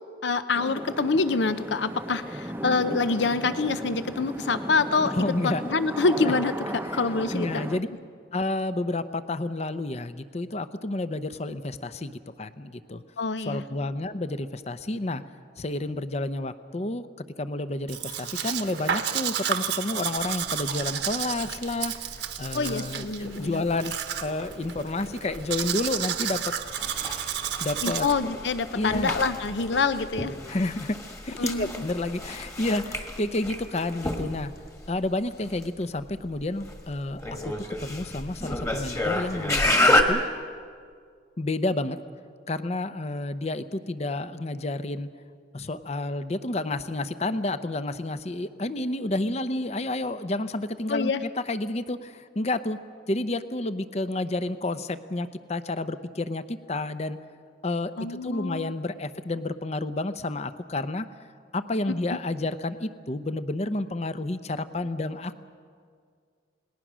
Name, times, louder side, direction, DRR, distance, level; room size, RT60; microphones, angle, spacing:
voice 1, 0.2-5.1 5.4-6.5 6.9-7.6 13.2-13.6 22.5-23.6 27.8-30.3 31.4-31.8 50.9-51.2 58.0-58.7 62.1-62.2, left 4 dB, 70° left, 12 dB, 0.7 m, -26 dB
sound 1, 0.5-7.8, right 1 dB, 10° right, 0.7 m, -35 dB
voice 2, 5.1-5.6 6.9-7.0 7.3-7.9 8.3-13.0 13.5-15.2 15.6-17.1 17.4-22.1 22.4-23.9 24.2-26.5 27.6-28.1 28.7-29.1 30.5-31.0 31.2-34.5 34.9-37.5 37.8-40.2 41.4-42.0 42.5-45.1 45.5-52.8 53.1-57.2 57.6-61.1 61.5-65.4, left 2 dB, 35° left, 12 dB, 0.7 m, -30 dB
Domestic sounds home sounds, 17.9-28.1, right 9 dB, 75° right, 1.3 m, -32 dB
sound 2, 20.2-40.0, left 1 dB, 15° left, 1.6 m, -31 dB
29.0 x 19.5 x 6.2 m, 2.1 s
head